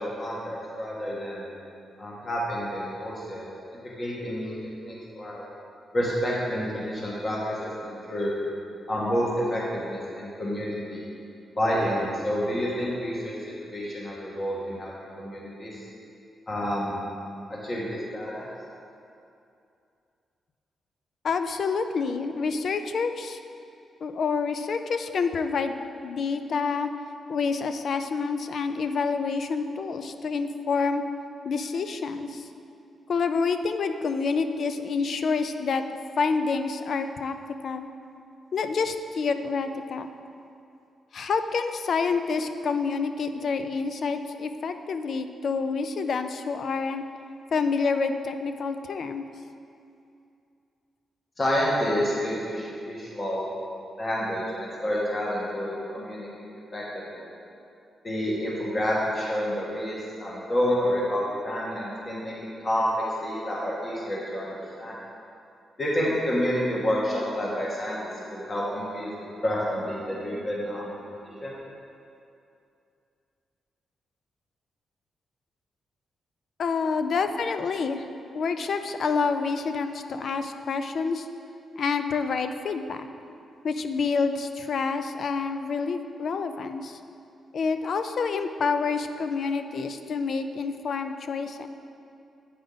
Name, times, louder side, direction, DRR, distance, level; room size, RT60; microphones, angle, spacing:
voice 1, 0.0-1.4 2.0-3.5 3.8-4.5 4.8-5.4 5.9-8.3 8.9-11.0 11.5-13.3 13.7-15.8 16.5-17.0 17.5-18.5 51.4-53.5 54.0-56.8 57.1-57.2 58.0-62.3 62.6-65.0 65.8-69.1 69.4-70.9 71.4-71.5, equal, 35° left, -5 dB, 1.5 m, -29 dB
voice 2, 21.2-23.4 24.0-26.9 27.3-31.0 31.4-32.5 33.1-35.8 36.2-37.3 37.6-37.9 38.5-40.1 41.1-47.0 47.5-49.2 76.6-78.1 78.3-81.3 81.8-83.1 83.6-87.0 87.5-91.7, left 5 dB, 60° left, 8 dB, 0.4 m, -28 dB
8.4 x 5.0 x 3.9 m, 2.6 s
cardioid pair, 95°, 0 cm